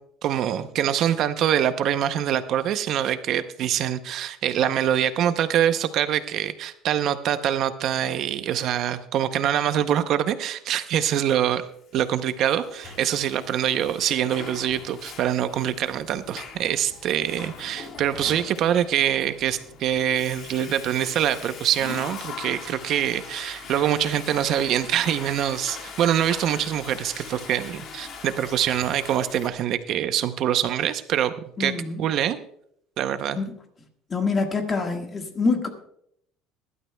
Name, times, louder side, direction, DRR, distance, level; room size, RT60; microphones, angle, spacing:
voice 1, 0.2-11.7 11.9-31.3 31.6-32.4 33.0-33.4, right 10 dB, 45° right, 11 dB, 0.6 m, -24 dB
Water / Toilet flush, 12.0-29.5, left 5 dB, 40° left, 1.6 m, -41 dB
voice 2, 31.6-32.0 33.3-33.5 34.1-35.7, left 4 dB, 25° left, 5 dB, 1.6 m, -25 dB
22.0 x 12.0 x 2.2 m, 0.70 s
cardioid pair, 155°, 0 cm